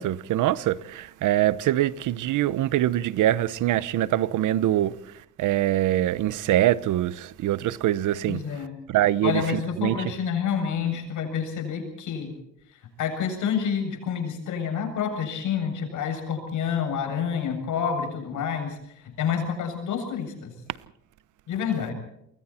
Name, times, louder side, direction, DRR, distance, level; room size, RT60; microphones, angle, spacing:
voice 1, 0.0-5.0 5.4-8.4 8.9-10.0, right 13 dB, 85° right, 1.0 m, -24 dB
voice 2, 8.3-8.8 9.2-12.3 12.7-20.5 21.5-21.9, left 7 dB, 80° left, 7.6 m, -28 dB
28.0 x 22.5 x 4.4 m
cardioid pair, 90°, 30 cm